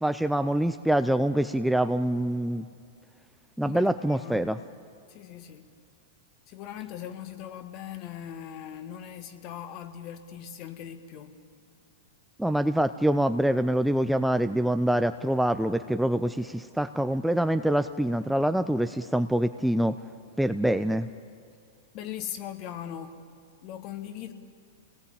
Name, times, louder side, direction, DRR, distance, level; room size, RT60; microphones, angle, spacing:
voice 1, 0.0-2.6 3.6-4.6 12.4-19.9 20.4-21.1, right 1 dB, ahead, 0.6 m, -25 dB
voice 2, 3.6-4.5 5.1-5.7 6.5-11.4 21.9-23.2 23.6-24.3, left 10 dB, 45° left, 1.9 m, -40 dB
27.5 x 19.0 x 8.9 m
hypercardioid pair, 120°, 0 cm